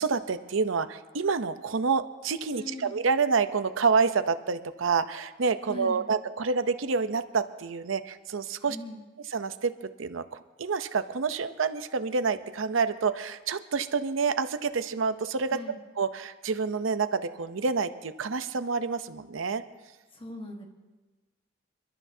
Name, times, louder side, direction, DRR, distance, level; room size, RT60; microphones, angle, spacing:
voice 1, 0.0-8.8 9.3-9.7 10.0-15.6 16.0-19.6, right 5 dB, 80° right, 10 dB, 0.7 m, -28 dB
voice 2, 2.5-3.0 5.7-6.0 8.7-9.0 15.5-15.8 20.1-20.6, left 1 dB, 25° left, 2 dB, 1.4 m, -40 dB
27.5 x 12.0 x 2.7 m, 1.2 s
head